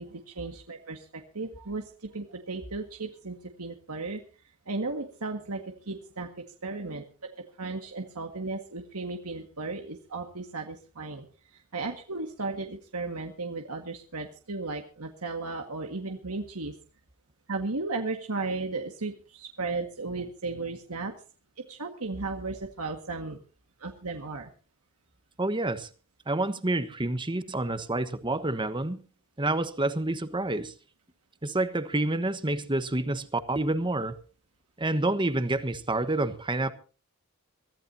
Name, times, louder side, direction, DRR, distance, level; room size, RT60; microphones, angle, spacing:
voice 1, 0.0-4.2 4.7-7.1 7.6-16.7 17.5-21.1 21.7-23.4 23.8-24.5, right 3 dB, 90° right, 1.8 m, -35 dB
voice 2, 25.4-25.9 26.3-29.0 29.4-30.7 31.4-34.2 34.8-36.7, right 2 dB, 20° right, 1.2 m, -28 dB
24.0 x 15.0 x 2.8 m
head